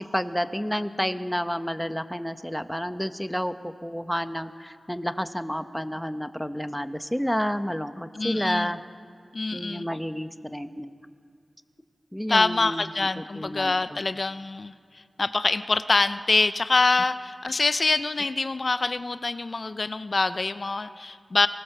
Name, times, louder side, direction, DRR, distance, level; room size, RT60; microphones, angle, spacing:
voice 1, 0.0-8.8 9.5-10.9 12.1-14.0, equal, 5° left, 9 dB, 1.1 m, -30 dB
voice 2, 8.1-8.7 9.3-9.9 12.3-14.7 15.2-21.5, left 3 dB, 55° left, 12 dB, 0.6 m, -25 dB
24.0 x 19.5 x 6.7 m, 2.2 s
cardioid pair, 50°, 0 cm